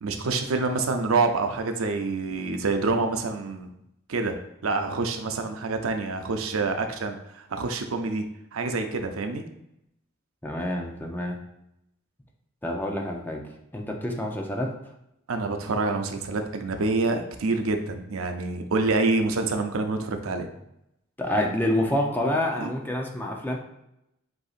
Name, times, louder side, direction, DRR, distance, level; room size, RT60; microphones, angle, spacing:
voice 1, 0.0-3.7 4.1-4.4 4.6-8.2 8.5-9.4 15.3-20.5 22.6-22.7, right 3 dB, 90° right, 6 dB, 0.6 m, -27 dB
voice 2, 10.4-11.4 12.6-13.4 13.7-14.7 21.2-23.6, left 1 dB, 10° left, 1 dB, 0.6 m, -27 dB
7.7 x 2.7 x 2.4 m, 0.82 s
head